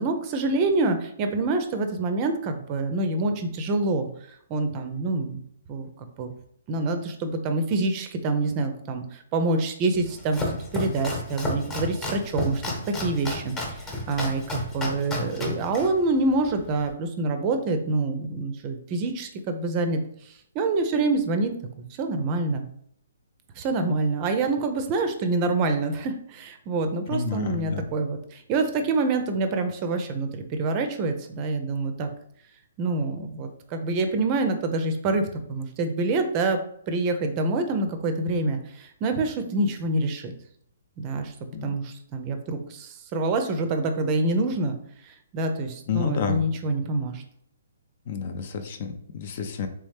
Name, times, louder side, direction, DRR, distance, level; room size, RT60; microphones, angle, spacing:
voice 1, 0.0-4.1 4.5-5.4 5.7-6.3 6.7-12.7 13.0-20.0 20.2-22.6 23.6-32.1 32.8-36.6 36.9-40.3 41.0-41.3 41.6-44.8 45.0-47.2, right 3 dB, 30° right, 7 dB, 0.5 m, -26 dB
Domestic sounds home sounds, 10.0-16.9, left 1 dB, 20° left, 1.0 m, -33 dB
voice 2, 27.1-27.9 41.5-41.7 45.9-46.5 48.1-49.7, left 6 dB, 45° left, 7 dB, 0.5 m, -29 dB
3.4 x 3.1 x 3.2 m, 0.70 s
figure-of-eight pair, 130°, 0 cm